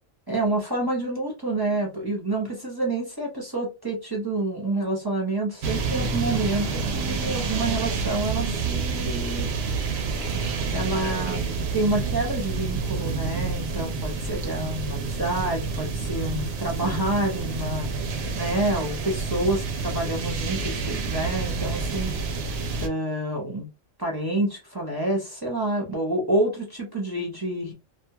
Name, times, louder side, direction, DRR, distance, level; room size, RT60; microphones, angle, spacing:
voice 1, 0.3-9.5 10.7-11.4 11.7-22.1 22.8-23.7 24.0-27.7, right 2 dB, 25° right, 0.7 m, -28 dB
sound 1, 5.6-22.9, right 4 dB, 65° right, 0.8 m, -28 dB
2.6 x 2.2 x 2.8 m
omnidirectional pair, 1.3 m